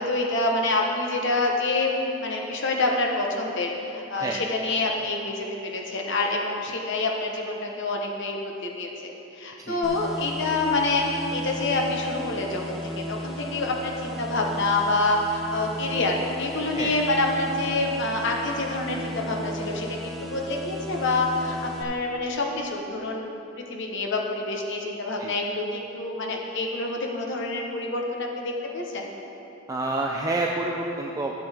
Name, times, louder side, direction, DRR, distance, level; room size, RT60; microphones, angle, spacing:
voice 1, 0.0-1.9 2.2-23.3 23.6-29.1, left 2 dB, 65° left, 0 dB, 1.1 m, -27 dB
sound 1, 9.8-21.8, equal, ahead, 0.8 m, -36 dB
voice 2, 29.7-31.3, right 2 dB, 15° right, -1 dB, 0.5 m, -28 dB
13.0 x 7.8 x 3.5 m, 3.0 s
head